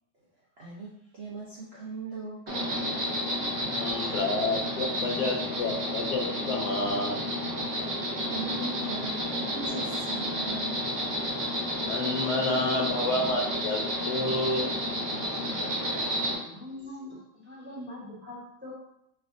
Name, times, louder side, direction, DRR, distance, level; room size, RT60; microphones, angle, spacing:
voice 1, 0.6-3.1 8.2-10.9, right 2 dB, 90° right, -5 dB, 0.5 m, -39 dB
Insect, 2.5-16.3, equal, 40° right, 0.9 m, -31 dB
voice 2, 3.8-7.2 11.8-13.8 14.1-14.7 15.1-15.2, left 2 dB, 70° left, 2 dB, 1.1 m, -29 dB
voice 3, 16.4-18.7, left 1 dB, 10° right, -6 dB, 0.7 m, -42 dB
4.7 x 3.4 x 2.5 m, 0.81 s
omnidirectional pair, 2.0 m